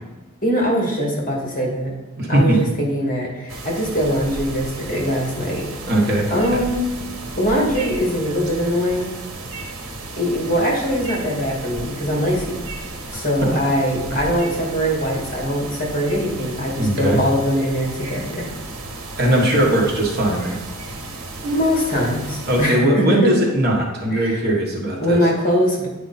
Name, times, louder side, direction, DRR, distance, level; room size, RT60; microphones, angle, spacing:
voice 1, 0.4-1.9 2.3-5.7 6.3-6.9 7.4-9.1 10.2-12.6 13.1-18.5 21.4-23.3 24.1-24.4 25.0-25.9, equal, 40° left, -2 dB, 2.2 m, -22 dB
voice 2, 2.2-2.6 5.8-6.3 16.8-17.2 19.2-20.6 22.5-25.2, right 1 dB, 50° right, -1 dB, 1.4 m, -19 dB
sound 1, 3.5-22.7, right 2 dB, 90° right, 1.1 m, -34 dB
9.2 x 4.9 x 4.2 m, 1.1 s
head